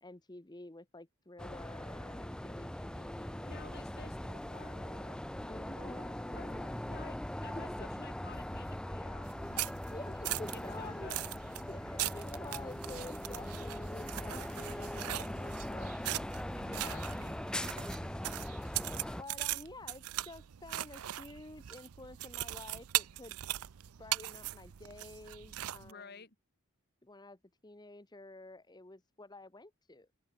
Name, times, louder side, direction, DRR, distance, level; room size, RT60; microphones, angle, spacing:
voice 1, 0.0-3.7 5.3-6.4 9.9-11.1 11.7-16.2 18.3-18.4 19.2-23.4 24.0-26.2 27.0-30.1, left 2 dB, 20° left, 1.0 m, -50 dB
sound 1, 1.4-19.2, left 1 dB, 5° left, 0.3 m, -41 dB
voice 2, 3.5-5.2 5.8-7.2 7.4-9.3 10.5-11.2 16.6-17.4 25.8-26.4, left 4 dB, 45° left, 1.9 m, -53 dB
sound 2, 9.2-25.9, right 15 dB, 85° right, 0.5 m, -40 dB
head